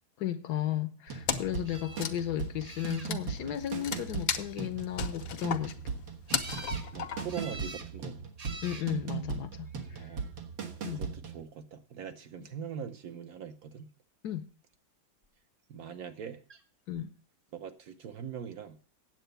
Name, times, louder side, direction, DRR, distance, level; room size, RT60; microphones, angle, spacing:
voice 1, 0.2-5.9 8.6-10.1 10.8-11.0 14.2-14.5 16.9-17.1, left 12 dB, 70° left, 1.1 m, -35 dB
sound 1, 1.1-11.4, right 6 dB, 80° right, 2.1 m, -38 dB
Wood, 1.3-1.6 1.9-7.5, left 8 dB, 85° left, 1.7 m, -35 dB
sound 2, 1.6-2.1 2.6-3.4 6.3-6.9 7.3-7.9 8.4-8.9 9.8-10.3 16.5-16.6 16.9-17.0, right 3 dB, 40° right, 0.5 m, -46 dB
voice 2, 6.9-8.2 9.9-10.3 10.8-13.9 15.7-16.4 17.5-18.8, right 7 dB, 60° right, 1.2 m, -42 dB
9.1 x 7.9 x 6.7 m
omnidirectional pair, 2.0 m